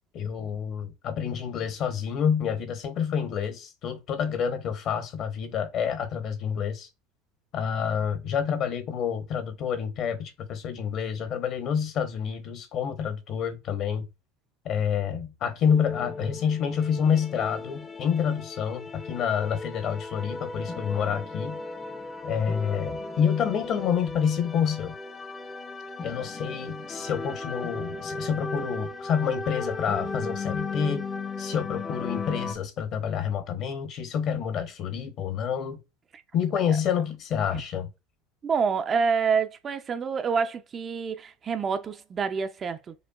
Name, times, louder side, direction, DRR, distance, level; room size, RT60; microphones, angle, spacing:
voice 1, 0.1-6.9 7.5-14.1 14.6-21.6 22.2-24.9 26.0-31.1 31.4-35.8 36.3-37.9, left 7 dB, 45° left, 0.8 m, -28 dB
sound 1, 15.6-32.5, left 3 dB, 20° left, 0.6 m, -36 dB
voice 2, 38.4-42.9, right 6 dB, 30° right, 0.4 m, -27 dB
5.1 x 2.2 x 2.3 m
supercardioid pair, 115°, 0 cm